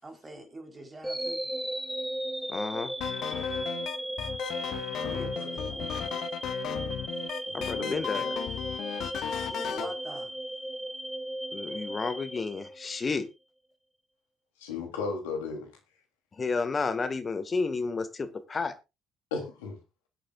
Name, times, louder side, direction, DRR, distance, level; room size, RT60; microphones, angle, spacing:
voice 1, 0.0-1.5 5.0-5.9 9.5-10.4, right 2 dB, 25° right, 4.2 m, -45 dB
sound 1, 1.0-13.2, right 1 dB, 5° right, 1.5 m, -36 dB
voice 2, 2.5-2.9 7.5-8.4 11.5-13.3 16.4-18.7, left 4 dB, 30° left, 1.8 m, -31 dB
sound 2, 3.0-9.9, left 11 dB, 55° left, 0.7 m, -35 dB
voice 3, 7.5-8.1 14.6-15.7 19.3-19.8, left 4 dB, 75° left, 3.3 m, -35 dB
21.0 x 8.6 x 2.5 m
figure-of-eight pair, 50°, 0 cm